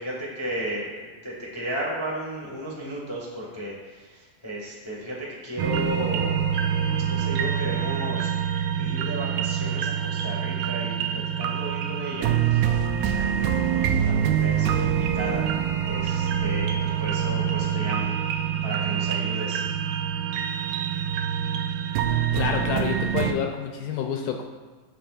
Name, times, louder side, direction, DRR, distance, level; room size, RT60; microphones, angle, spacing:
voice 1, 0.0-6.4 6.7-8.3 8.8-14.1 14.4-15.5 15.8-18.1 18.6-19.6, equal, 30° left, -5 dB, 0.5 m, -34 dB
sound 1, 5.6-23.3, right 9 dB, 80° right, 1.8 m, -25 dB
voice 2, 22.3-24.4, left 7 dB, 80° left, 3 dB, 2.0 m, -28 dB
16.5 x 5.5 x 2.6 m, 1.3 s
omnidirectional pair, 4.1 m